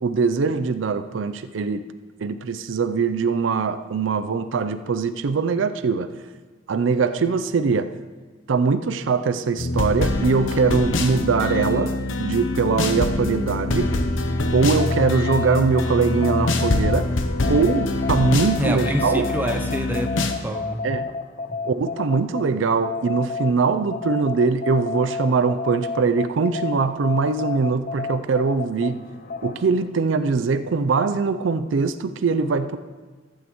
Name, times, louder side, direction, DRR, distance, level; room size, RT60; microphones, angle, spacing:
voice 1, 0.0-1.8 2.2-6.1 6.7-7.9 8.5-13.9 14.5-17.1 17.5-19.3 20.8-21.1 21.6-29.0 29.4-32.8, right 4 dB, 80° right, 11 dB, 0.5 m, -22 dB
sound 1, 9.6-20.3, left 2 dB, 85° left, 0.8 m, -24 dB
sound 2, 14.6-23.5 23.9-29.9, left 4 dB, 45° left, 0.5 m, -31 dB
voice 2, 18.6-20.9 21.5-21.6, right 1 dB, 10° right, 3 dB, 0.6 m, -27 dB
15.0 x 8.5 x 3.1 m, 1.4 s
head